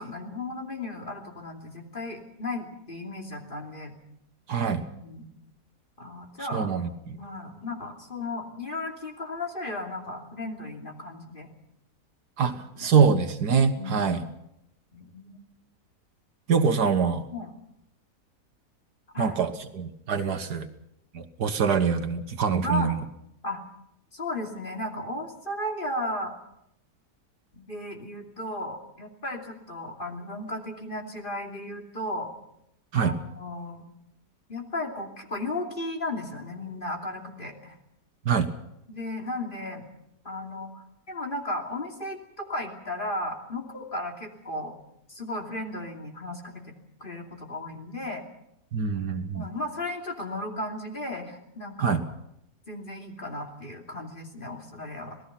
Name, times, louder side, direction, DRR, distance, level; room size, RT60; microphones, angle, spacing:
voice 1, 0.0-4.0 4.6-5.3 6.0-6.7 7.2-11.5 12.4-12.9 13.7-14.3 14.9-15.4 17.3-17.5 19.1-19.4 22.6-22.9 23.4-23.6 24.1-26.3 27.5-32.3 32.9-33.9 34.5-37.7 38.9-39.8 40.2-44.8 45.1-46.7 47.0-48.2 49.3-52.0 52.7-55.2, left 1 dB, 30° left, 1 dB, 3.0 m, -35 dB
voice 2, 4.5-4.8 6.5-7.2 12.4-12.5 12.8-14.2 16.5-17.2 19.2-19.5 19.7-20.7 21.1-23.0 32.9-33.1 38.3-38.5 48.7-49.5 51.8-52.0, right 6 dB, 75° right, 8 dB, 1.9 m, -24 dB
26.5 x 18.5 x 5.9 m, 0.80 s
omnidirectional pair, 1.8 m